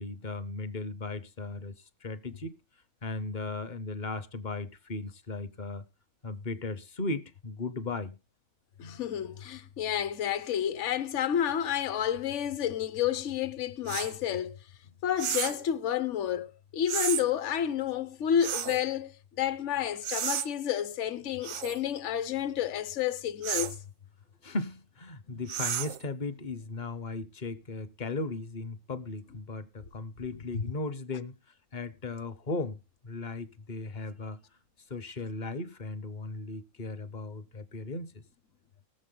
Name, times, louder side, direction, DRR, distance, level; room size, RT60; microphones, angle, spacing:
voice 1, 0.0-1.7 2.0-2.5 3.0-5.8 6.2-8.1 24.4-31.4 31.7-34.4 34.9-38.2, left 3 dB, 45° left, 0.7 m, -37 dB
voice 2, 8.8-14.6 15.0-23.8 25.3-25.4 30.5-30.6, left 9 dB, 65° left, 1.2 m, -30 dB
sound 1, 13.9-14.1 15.2-15.6 16.9-17.2 18.4-18.8 20.0-20.5 21.4-21.8 23.4-23.8 25.5-26.0, right 9 dB, 85° right, 1.2 m, -32 dB
19.5 x 7.5 x 3.8 m
omnidirectional pair, 1.4 m